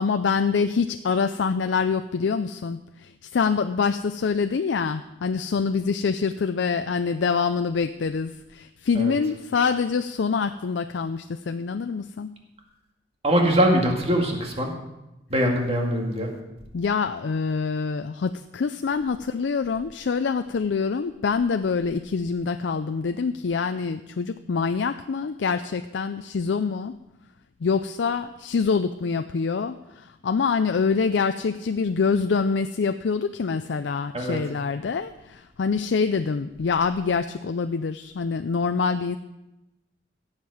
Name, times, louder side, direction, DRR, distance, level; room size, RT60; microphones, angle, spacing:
voice 1, 0.0-12.3 16.7-26.9 27.6-39.2, left 5 dB, 80° left, 9 dB, 0.4 m, -25 dB
voice 2, 13.2-14.7 15.3-16.3 34.1-34.4, equal, 35° right, 1 dB, 2.1 m, -22 dB
16.5 x 7.4 x 4.9 m, 0.95 s
head